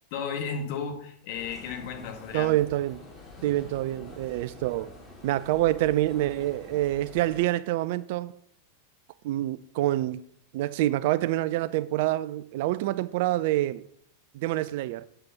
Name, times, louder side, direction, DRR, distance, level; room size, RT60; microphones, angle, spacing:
voice 1, 0.1-2.5, left 6 dB, 45° left, 1.5 m, -34 dB
sound 1, 1.3-7.5, left 3 dB, 10° left, 3.4 m, -47 dB
voice 2, 2.3-3.0 3.4-4.9 5.2-8.4 9.2-10.2 10.5-13.8 14.3-15.1, right 15 dB, 50° right, 0.3 m, -26 dB
7.7 x 4.8 x 5.7 m
figure-of-eight pair, 90°, 0 cm